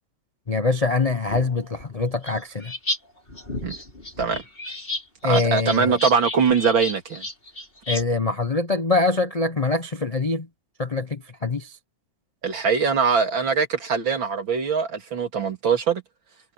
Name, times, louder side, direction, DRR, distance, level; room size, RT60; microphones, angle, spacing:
voice 1, 0.5-2.7 5.2-6.0 7.9-10.5 10.8-11.8, left 3 dB, 55° left, 0.4 m, -24 dB
sound 1, 1.3-3.0 3.3-8.0, left 1 dB, 25° left, 5.0 m, -32 dB
voice 2, 5.2-7.2 12.4-16.0, right 6 dB, 75° right, 3.5 m, -22 dB
omnidirectional pair, 2.1 m